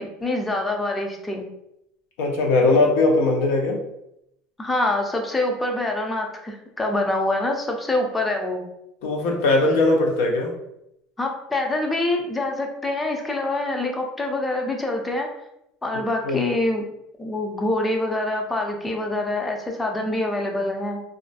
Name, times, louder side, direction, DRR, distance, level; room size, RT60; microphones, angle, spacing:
voice 1, 0.0-1.4 4.6-8.6 11.2-15.3 15.8-16.8 17.2-21.0, left 2 dB, 15° left, 2 dB, 0.5 m, -25 dB
voice 2, 2.2-3.8 9.0-10.5 16.3-16.4, left 2 dB, 75° left, 2 dB, 0.6 m, -19 dB
2.5 x 2.2 x 2.5 m, 0.80 s
supercardioid pair, 100°, 0 cm